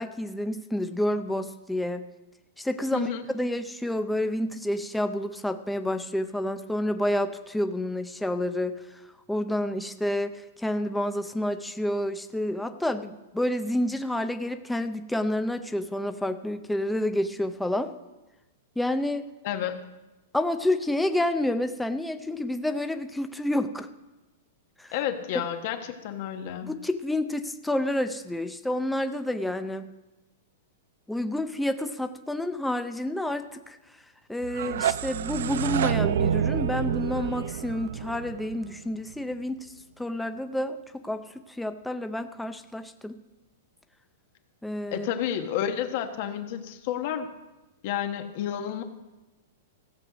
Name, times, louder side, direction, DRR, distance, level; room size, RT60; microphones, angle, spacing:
voice 1, 0.0-2.0 2.6-8.8 9.3-17.9 18.8-19.2 20.3-23.9 24.8-24.9 26.6-29.9 31.1-33.8 34.3-43.2 44.6-45.1, left 1 dB, 5° left, 8 dB, 0.5 m, -29 dB
voice 2, 2.9-3.2 19.4-19.8 24.9-26.8 44.9-47.3 47.8-48.8, left 10 dB, 50° left, 7 dB, 1.2 m, -30 dB
sound 1, 34.4-39.3, right 9 dB, 75° right, 0.3 m, -28 dB
15.5 x 7.8 x 5.1 m, 1.1 s
hypercardioid pair, 155°, 0 cm